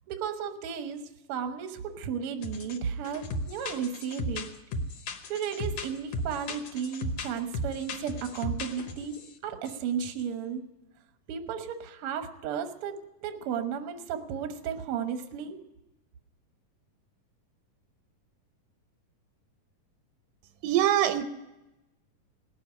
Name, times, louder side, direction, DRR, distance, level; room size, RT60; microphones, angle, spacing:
voice 1, 0.1-1.0 1.3-4.5 5.3-10.6 11.3-13.0 13.2-15.6, right 7 dB, 65° right, 1.5 m, -34 dB
sound 1, 2.4-2.8 3.0-9.3 9.7-10.2, left 1 dB, 65° left, 2.0 m, -35 dB
voice 2, 20.6-21.2, right 11 dB, 85° right, 2.4 m, -23 dB
18.0 x 7.1 x 9.8 m
omnidirectional pair, 3.8 m